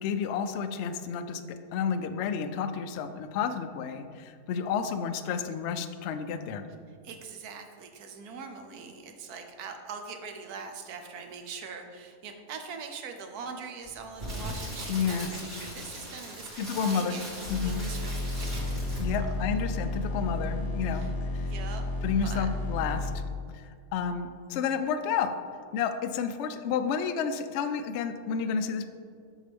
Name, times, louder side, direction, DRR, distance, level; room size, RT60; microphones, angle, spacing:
voice 1, 0.0-1.4 1.7-6.7 14.9-15.3 16.6-17.1 17.5-17.8 19.0-21.5 22.0-23.1 23.5-25.3 25.7-28.9, left 6 dB, 75° left, 8 dB, 0.6 m, -31 dB
voice 2, 6.9-17.2 17.6-19.3 20.9-21.9 22.2-22.5, right 5 dB, 75° right, 5 dB, 1.2 m, -43 dB
Crackle, 13.8-19.3 19.6-19.8, equal, 45° right, 2.3 m, -39 dB
sound 1, 17.4-23.1, left 2 dB, 25° left, 0.5 m, -32 dB
7.2 x 6.4 x 3.4 m, 2.2 s
omnidirectional pair, 1.7 m